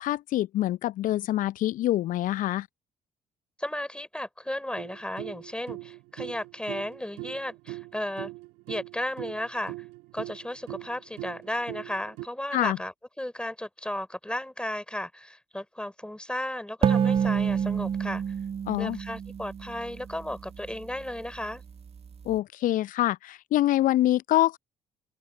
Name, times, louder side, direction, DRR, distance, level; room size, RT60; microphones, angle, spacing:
voice 1, 0.0-2.7 12.5-12.8 18.7-19.0 22.2-24.6, left 14 dB, 55° left, 0.8 m, -25 dB
voice 2, 3.6-8.3 8.7-9.7 10.1-18.3 18.8-21.6, left 1 dB, 5° left, 4.1 m, -34 dB
sound 1, 4.8-12.3, right 24 dB, 65° right, 1.9 m, -41 dB
sound 2, 16.8-20.3, right 7 dB, 40° right, 1.9 m, -27 dB
figure-of-eight pair, 45°, 16 cm